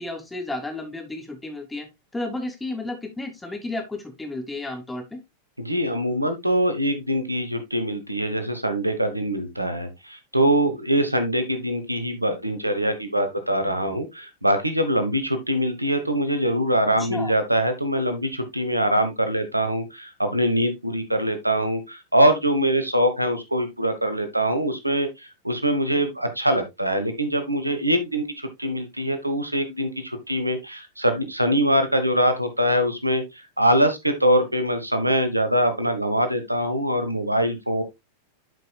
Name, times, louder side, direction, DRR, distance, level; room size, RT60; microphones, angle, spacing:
voice 1, 0.0-1.9 2.1-5.2 17.0-17.3, left 2 dB, 10° left, 4 dB, 2.2 m, -32 dB
voice 2, 5.6-37.8, equal, 85° right, 9 dB, 1.1 m, -23 dB
11.5 x 5.3 x 2.3 m, 0.20 s
figure-of-eight pair, 90°, 0 cm